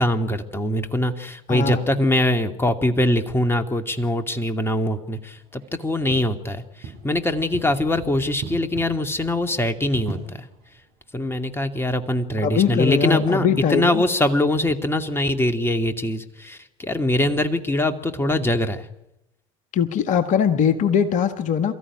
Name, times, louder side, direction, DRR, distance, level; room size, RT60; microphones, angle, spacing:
voice 1, 0.0-10.5 11.1-18.9, left 1 dB, 15° left, 8 dB, 2.4 m, -23 dB
voice 2, 1.5-1.8 12.4-14.0 19.7-21.7, left 7 dB, 45° left, 10 dB, 1.8 m, -21 dB
sound 1, 3.8-11.5, right 4 dB, 55° right, 7.1 m, -41 dB
28.0 x 14.0 x 9.9 m, 0.90 s
figure-of-eight pair, 60°, 17 cm